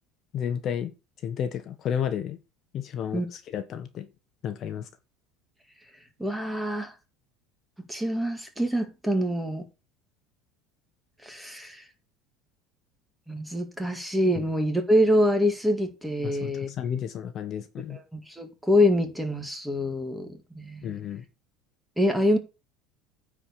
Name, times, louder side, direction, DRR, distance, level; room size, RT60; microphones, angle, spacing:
voice 1, 0.3-0.9 1.2-2.4 2.7-4.1 4.4-4.9 14.3-14.4 16.2-18.0 20.8-21.2, left 8 dB, 40° left, 1.1 m, -32 dB
voice 2, 6.2-6.9 7.9-9.6 11.2-11.8 13.3-16.7 17.9-20.3 20.5-20.8 22.0-22.4, equal, 5° right, 2.1 m, -25 dB
9.7 x 4.9 x 7.1 m
cardioid pair, 145°, 0 cm